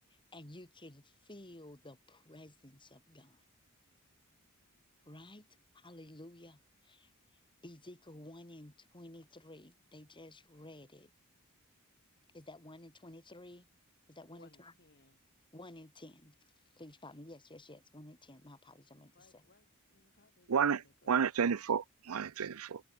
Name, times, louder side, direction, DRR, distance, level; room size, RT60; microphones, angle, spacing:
voice 1, 0.1-3.4 5.1-5.5 5.7-11.1 12.3-13.7 14.1-14.7 15.5-16.4 16.7-19.4, left 1 dB, 25° left, 3.6 m, -53 dB
voice 2, 14.3-15.2 19.1-21.2, left 3 dB, 50° left, 3.3 m, -65 dB
voice 3, 20.5-20.8 21.1-22.8, right 6 dB, 80° right, 0.6 m, -31 dB
head